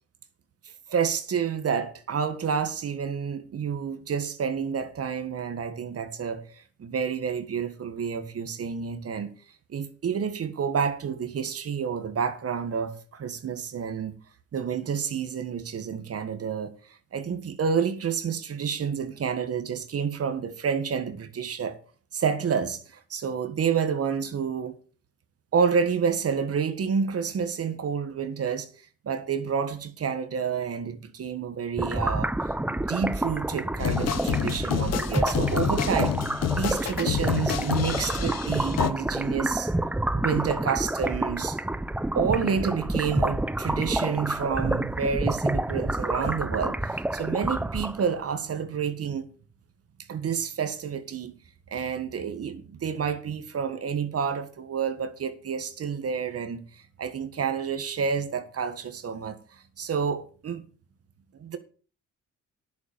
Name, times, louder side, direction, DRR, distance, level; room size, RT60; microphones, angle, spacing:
voice 1, 0.9-9.3 9.7-14.2 14.5-16.7 17.1-21.8 22.1-24.8 25.5-28.7 29.0-32.3 32.7-36.2 36.5-39.7 40.1-41.6 42.1-49.3 50.1-51.4 51.7-60.6 61.3-61.6, right 6 dB, 50° right, 1.6 m, -29 dB
sound 1, 31.8-48.2, right 1 dB, 5° right, 0.5 m, -28 dB
sound 2, 33.8-38.9, left 10 dB, 55° left, 1.0 m, -28 dB
10.5 x 7.2 x 6.8 m
cardioid pair, 90°, 30 cm